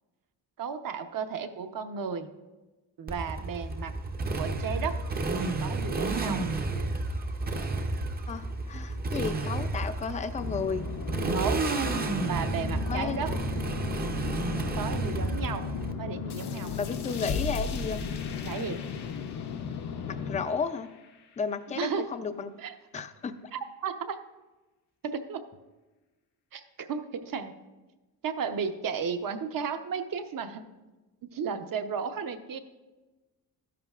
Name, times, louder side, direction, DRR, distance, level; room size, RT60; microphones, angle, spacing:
voice 1, 0.6-2.3 3.0-3.9 4.4-4.9 5.4-6.5 11.2-11.7 12.3-13.3 14.7-15.7 16.0-16.7 18.4-18.8 21.7-22.1 22.6-22.7 23.5-24.2 25.0-25.4 26.5-27.5 28.2-30.7 31.3-32.6, right 6 dB, 55° right, 7 dB, 0.8 m, -34 dB
Motorcycle, 3.1-15.9, right 3 dB, 25° right, 0.6 m, -31 dB
voice 2, 8.3-10.8 12.8-13.2 16.7-18.0 20.1-20.9 21.4-22.5 22.9-23.4, left 5 dB, 20° left, 10 dB, 0.4 m, -33 dB
sound 1, 10.4-20.5, left 7 dB, 60° left, 0.7 m, -36 dB
sound 2, 16.3-21.5, left 4 dB, 85° left, 1.2 m, -39 dB
13.0 x 11.0 x 2.4 m, 1.1 s
wide cardioid pair, 155°, 40 cm